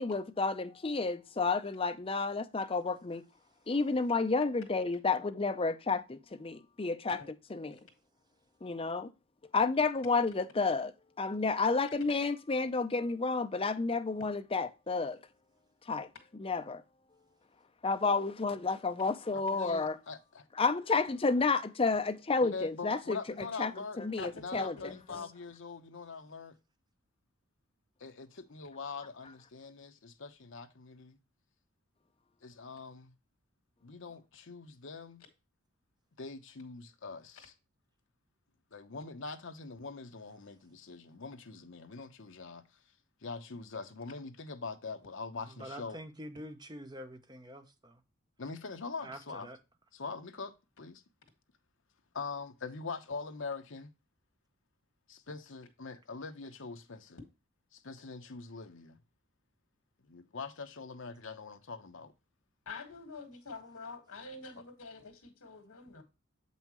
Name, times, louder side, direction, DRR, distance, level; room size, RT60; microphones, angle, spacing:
voice 1, 0.0-3.2 3.7-7.2 7.5-7.8 8.6-9.1 9.5-10.9 11.2-15.2 15.9-16.1 16.4-16.8 17.8-20.0 20.6-23.7 24.0-24.7, left 4 dB, 25° left, 0.5 m, -31 dB
voice 2, 19.3-20.4 22.4-26.6 28.0-31.2 32.4-33.1 33.8-35.2 36.2-37.5 38.7-42.6 43.2-46.0 48.4-49.5 49.9-51.0 52.1-53.9 55.1-57.2 57.7-59.0 60.0-62.1, left 4 dB, 60° left, 0.8 m, -43 dB
voice 3, 24.2-25.3 62.7-66.0, left 3 dB, 80° left, 1.7 m, -46 dB
voice 4, 45.5-48.0 49.0-49.6, equal, 20° right, 0.7 m, -46 dB
7.4 x 5.5 x 3.0 m
head